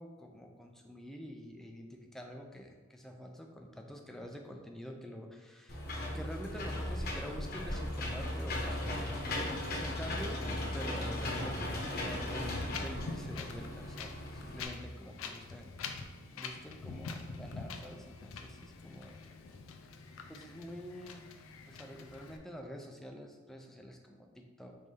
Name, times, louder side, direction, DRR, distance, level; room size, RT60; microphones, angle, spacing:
voice 1, 0.0-5.8 6.1-10.4 10.7-15.7 16.3-19.2 20.3-21.3 21.6-24.8, equal, ahead, 2 dB, 0.3 m, -47 dB
Engine / Mechanisms, 5.7-14.6, left 1 dB, 50° left, 0.9 m, -37 dB
Wind, 12.5-22.4, left 4 dB, 85° left, 0.4 m, -45 dB
5.4 x 2.6 x 3.2 m, 1.3 s
head